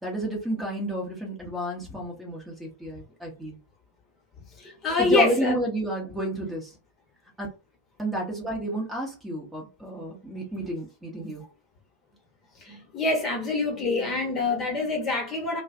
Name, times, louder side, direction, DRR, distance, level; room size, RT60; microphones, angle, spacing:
voice 1, 0.0-3.6 5.0-6.7 7.4-7.5 8.0-11.4, right 1 dB, 10° right, 0.8 m, -30 dB
voice 2, 4.6-5.6 6.4-6.5 9.9-10.0 12.6-15.6, left 3 dB, 25° left, 1.0 m, -26 dB
2.4 x 2.0 x 2.5 m
figure-of-eight pair, 90°, 0 cm